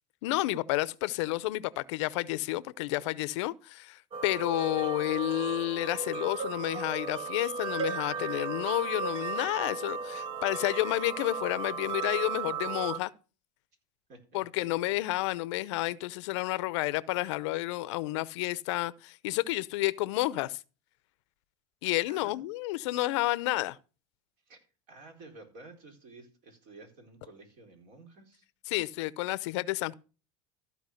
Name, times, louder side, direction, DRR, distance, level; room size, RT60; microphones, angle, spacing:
voice 1, 0.2-13.1 14.3-20.6 21.8-23.8 28.7-30.0, left 19 dB, 75° left, 0.6 m, -30 dB
sound 1, 4.1-13.0, right 4 dB, 40° right, 0.8 m, -35 dB
voice 2, 14.1-14.4 14.8-14.9 22.1-22.3 24.5-28.4, right 3 dB, 55° right, 4.5 m, -52 dB
14.5 x 4.9 x 6.4 m
supercardioid pair, 110°, 15 cm